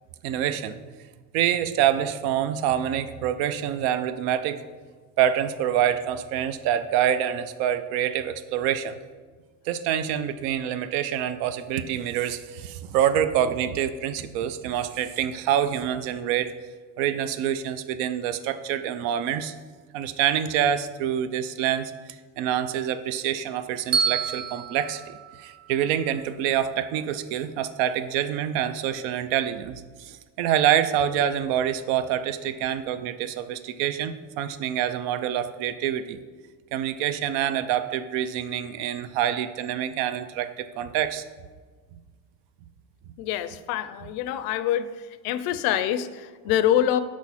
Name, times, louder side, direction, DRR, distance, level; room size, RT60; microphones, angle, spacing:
voice 1, 0.2-0.8 1.3-4.6 5.2-8.9 9.7-16.5 17.0-19.5 19.9-21.9 22.4-25.1 25.4-36.2 36.7-41.2 41.9-42.0 44.0-44.1, right 10 dB, 75° right, 12 dB, 0.6 m, -26 dB
Bell, 23.9-26.1, right 5 dB, 25° right, 0.9 m, -29 dB
voice 2, 43.2-44.9 45.2-47.0, left 11 dB, 65° left, 13 dB, 0.5 m, -25 dB
6.4 x 4.6 x 4.1 m, 1.4 s
cardioid pair, 140°, 39 cm